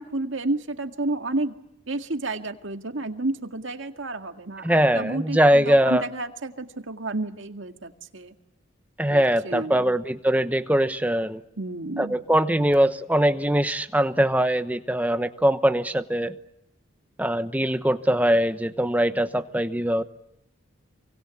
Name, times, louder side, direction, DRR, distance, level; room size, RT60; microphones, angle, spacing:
voice 1, 0.0-1.5 1.9-8.3 9.1-10.0 11.6-12.2, right 2 dB, 75° right, 6 dB, 2.0 m, -31 dB
voice 2, 4.6-6.0 9.0-11.4 12.0-16.3 17.2-20.0, right 1 dB, 10° right, 10 dB, 0.9 m, -22 dB
28.0 x 24.5 x 8.4 m, 0.84 s
head